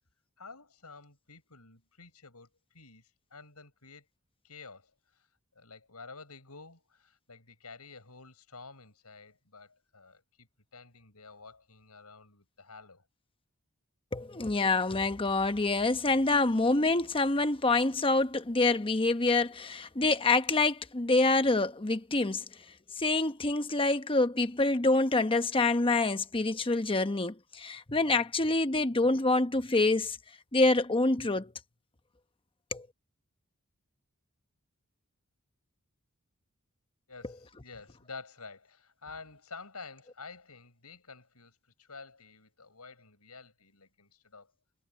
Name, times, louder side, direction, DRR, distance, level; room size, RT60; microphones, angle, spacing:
voice 1, 0.4-2.5 2.7-4.1 4.4-5.3 5.6-10.5 10.7-13.0 37.1-44.5, left 4 dB, 85° left, 7.3 m, -50 dB
voice 2, 14.1-22.4 22.9-30.2 30.5-31.5 32.7-32.9, left 2 dB, 25° left, 1.0 m, -26 dB
head